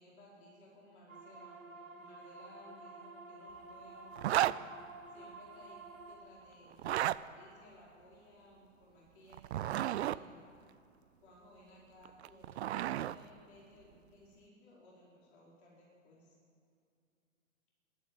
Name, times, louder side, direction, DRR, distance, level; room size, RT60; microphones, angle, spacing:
voice 1, 0.0-4.5 5.1-10.5 11.2-16.3, left 1 dB, 55° left, -5 dB, 4.9 m, -59 dB
sound 1, 1.1-6.2, right 3 dB, 80° right, 3.3 m, -51 dB
Zipper (clothing), 4.2-4.6 6.7-7.2 9.3-10.2 12.1-13.2, right 13 dB, 55° right, 0.5 m, -32 dB
12.0 x 11.5 x 9.1 m, 2.4 s
figure-of-eight pair, 110°, 39 cm